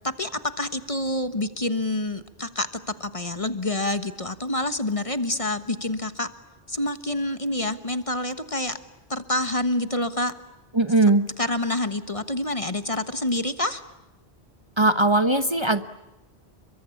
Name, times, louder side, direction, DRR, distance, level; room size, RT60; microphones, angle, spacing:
voice 1, 0.0-6.3 6.7-8.8 9.1-10.3 11.4-13.8, left 1 dB, 30° left, 11 dB, 1.3 m, -27 dB
voice 2, 10.7-11.3 14.8-15.8, right 2 dB, 25° right, 10 dB, 1.1 m, -19 dB
30.0 x 23.5 x 8.5 m, 0.98 s
omnidirectional pair, 1.1 m